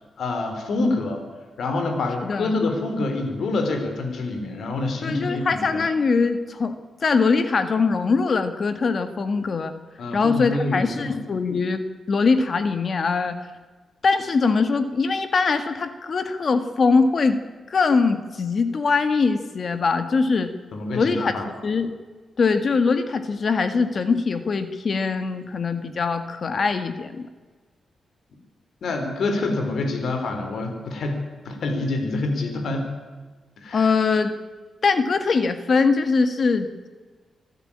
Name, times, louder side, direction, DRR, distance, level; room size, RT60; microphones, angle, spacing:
voice 1, 0.2-1.2 1.6-5.8 10.0-11.2 20.7-21.5 28.8-32.9 33.6-33.9, left 2 dB, 70° left, 6 dB, 4.3 m, -26 dB
voice 2, 2.2-2.5 5.0-6.8 7.0-9.7 10.1-13.4 14.0-17.4 17.7-20.5 20.9-21.4 21.6-21.9 22.4-27.3 33.7-34.3 34.8-36.9, left 4 dB, 50° left, 9 dB, 1.9 m, -22 dB
26.0 x 14.5 x 8.9 m, 1.4 s
cardioid pair, 110°, 0 cm